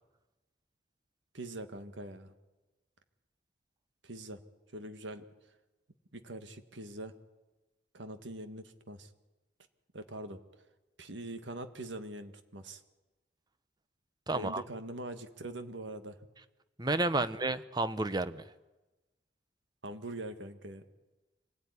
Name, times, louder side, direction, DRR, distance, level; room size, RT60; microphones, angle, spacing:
voice 1, 1.3-2.3 4.0-4.4 4.7-5.2 6.1-7.1 7.9-9.1 9.9-10.4 11.0-12.8 14.3-16.2 19.8-20.8, right 1 dB, 75° right, 9 dB, 1.8 m, -43 dB
voice 2, 14.3-14.6 16.8-18.4, right 2 dB, 20° right, 13 dB, 0.8 m, -31 dB
25.5 x 18.0 x 9.8 m, 1.1 s
head